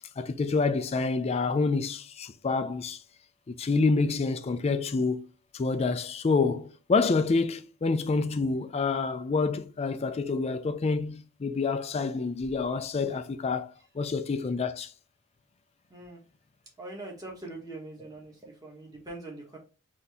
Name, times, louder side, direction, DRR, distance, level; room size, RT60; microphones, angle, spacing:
voice 1, 0.2-3.0 3.5-5.2 5.5-14.9, left 4 dB, 30° left, 0.3 m, -27 dB
voice 2, 15.9-16.2 16.8-19.6, right 2 dB, 15° right, 1.2 m, -42 dB
4.0 x 2.8 x 3.4 m
head